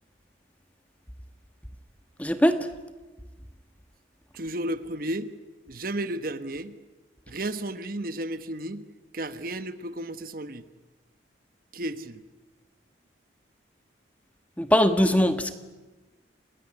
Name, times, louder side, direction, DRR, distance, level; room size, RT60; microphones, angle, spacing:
voice 1, 2.2-2.7 14.6-15.5, equal, 10° left, 8 dB, 1.5 m, -21 dB
voice 2, 4.3-5.3 5.7-6.8 7.3-8.8 9.1-10.6 11.7-12.2, right 1 dB, 50° right, 11 dB, 1.2 m, -33 dB
29.5 x 20.0 x 9.9 m, 1.2 s
head